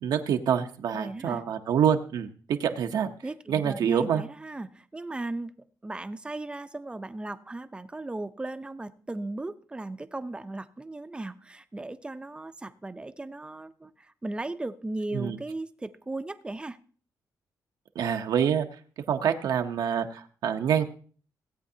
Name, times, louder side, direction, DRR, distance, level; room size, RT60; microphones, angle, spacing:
voice 1, 0.0-3.1 3.5-4.2 15.1-15.4 17.9-18.7 19.1-20.8, right 8 dB, 75° right, 0.8 m, -26 dB
voice 2, 0.9-1.4 3.2-5.5 5.8-16.8, right 2 dB, 15° right, 0.6 m, -37 dB
17.0 x 8.5 x 2.8 m
cardioid pair, 115°, 7 cm